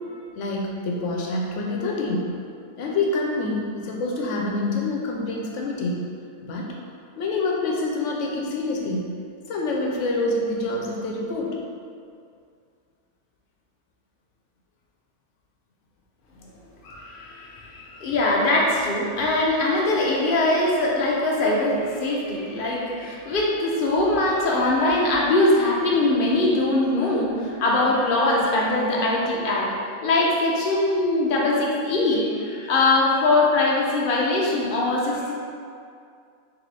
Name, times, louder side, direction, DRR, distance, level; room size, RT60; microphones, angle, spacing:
voice 1, 0.1-2.3 2.8-6.1 6.4-6.8 7.2-9.1 9.5-11.6 16.4-16.5, left 2 dB, 85° left, -1 dB, 1.0 m, -26 dB
voice 2, 16.8-29.7 30.0-35.3, left 2 dB, 50° left, -3 dB, 0.8 m, -22 dB
4.0 x 2.9 x 3.2 m, 2.3 s
omnidirectional pair, 1.3 m